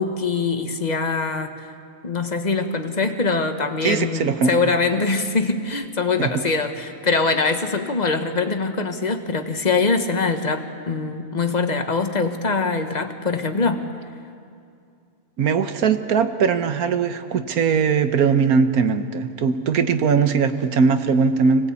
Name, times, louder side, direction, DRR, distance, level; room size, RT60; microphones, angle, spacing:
voice 1, 0.0-1.5 2.0-13.8, left 4 dB, 30° left, 7 dB, 1.3 m, -23 dB
voice 2, 3.8-4.7 6.2-6.3 15.4-21.7, right 5 dB, 85° right, 9 dB, 1.5 m, -20 dB
25.5 x 19.0 x 8.3 m, 2.4 s
omnidirectional pair, 1.5 m